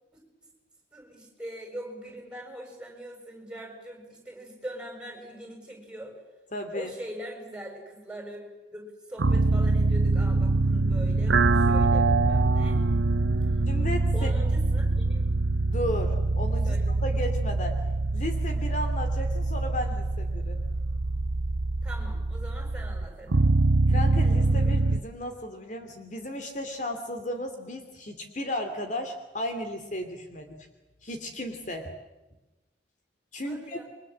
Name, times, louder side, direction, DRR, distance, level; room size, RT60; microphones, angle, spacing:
voice 1, 0.9-6.1 6.7-8.4 8.7-12.8 14.1-15.3 16.7-16.8 21.8-23.4 33.4-33.8, right 1 dB, 5° right, 2 dB, 6.9 m, -42 dB
voice 2, 6.5-6.9 13.7-14.3 15.7-17.8 18.1-20.6 23.9-30.6 31.0-31.9 33.3-33.8, left 1 dB, 45° left, 5 dB, 2.7 m, -34 dB
sound 1, 9.2-25.0, right 2 dB, 85° right, 0.9 m, -24 dB
29.0 x 24.0 x 7.6 m, 1.1 s
head